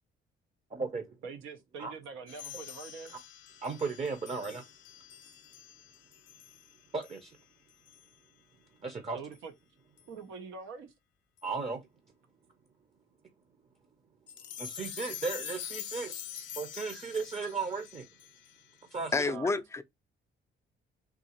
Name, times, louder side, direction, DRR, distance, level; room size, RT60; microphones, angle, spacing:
voice 1, 0.7-1.2 1.8-1.9 3.6-4.6 6.9-7.4 8.8-9.2 11.4-11.8 14.6-16.2 16.5-18.1 18.9-19.3, right 4 dB, 30° right, 0.7 m, -35 dB
voice 2, 1.2-3.1 9.1-9.5 10.1-10.9 16.3-16.5 16.9-17.0 19.2-19.6, right 5 dB, 90° right, 0.6 m, -44 dB
sound 1, 2.3-6.7 7.0-7.2 7.9-8.0 9.3-9.4 10.0-10.1 11.4-11.5 14.3-19.0, left 10 dB, 70° left, 0.6 m, -45 dB
voice 3, 19.1-19.8, left 3 dB, 15° left, 0.4 m, -29 dB
3.6 x 2.9 x 2.8 m
cardioid pair, 90°, 20 cm